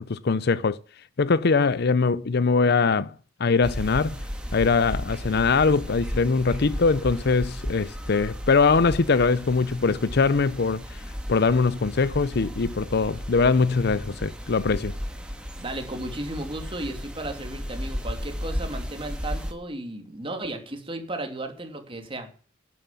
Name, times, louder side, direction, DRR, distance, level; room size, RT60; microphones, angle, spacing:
voice 1, 0.1-0.8 1.2-3.1 3.4-4.2 4.5-10.8 11.3-14.9, left 4 dB, 55° left, 0.6 m, -22 dB
Wind in the Trees with Birds, 3.6-19.5, equal, 5° right, 2.1 m, -35 dB
voice 2, 15.6-22.3, right 1 dB, 25° right, 2.8 m, -34 dB
11.5 x 9.3 x 7.5 m
head